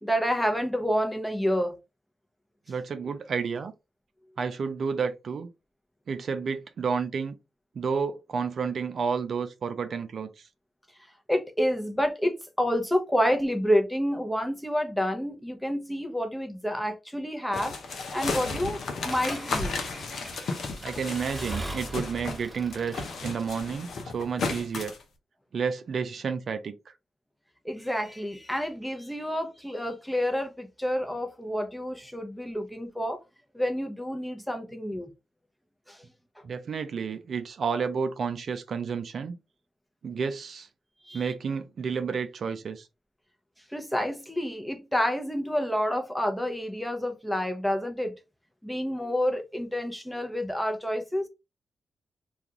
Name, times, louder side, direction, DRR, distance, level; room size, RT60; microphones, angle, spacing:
voice 1, 0.0-1.8 11.3-19.9 27.6-33.2 33.5-35.1 35.9-36.0 41.1-41.3 43.7-48.1 48.6-51.3, equal, 5° left, 0.7 m, -29 dB
voice 2, 2.7-3.7 4.4-5.5 6.1-7.3 7.8-10.5 20.8-24.9 25.5-26.7 36.4-39.4 40.0-40.7 41.1-42.9, right 6 dB, 65° right, 0.4 m, -31 dB
sound 1, 17.5-22.4 22.7-25.0, left 4 dB, 70° left, 0.6 m, -34 dB
Accelerating revving vroom / Mechanisms, 19.1-24.0, right 1 dB, 15° right, 1.2 m, -40 dB
2.4 x 2.3 x 2.9 m
supercardioid pair, 45°, 0 cm